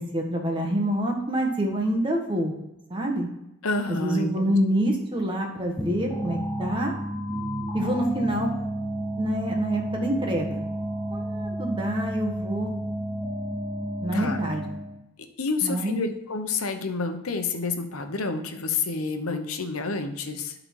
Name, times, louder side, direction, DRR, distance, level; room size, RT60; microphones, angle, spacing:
voice 1, 0.0-2.6 2.9-3.3 3.9-6.9 7.7-8.5 9.2-10.7 11.1-12.7 14.0-14.6 15.6-16.0, right 1 dB, 20° right, 1 dB, 1.4 m, -26 dB
voice 2, 3.6-4.6 14.1-14.4 15.4-20.5, left 3 dB, 85° left, 7 dB, 0.9 m, -29 dB
sound 1, 5.8-15.0, right 1 dB, ahead, 1.0 m, -31 dB
12.0 x 4.0 x 4.7 m, 0.88 s
head